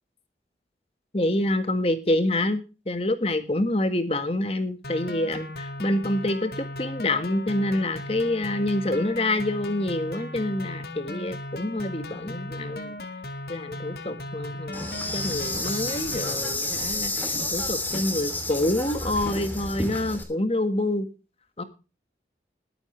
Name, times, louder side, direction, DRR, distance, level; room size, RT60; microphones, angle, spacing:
voice 1, 1.1-13.0 13.5-21.1 21.6-21.7, left 1 dB, 35° left, 10 dB, 1.7 m, -27 dB
sound 1, 4.8-16.4, left 2 dB, 65° left, 2.0 m, -37 dB
Insect, 14.7-20.2, left 2 dB, 10° left, 2.8 m, -30 dB
21.0 x 8.8 x 3.3 m, 0.32 s
head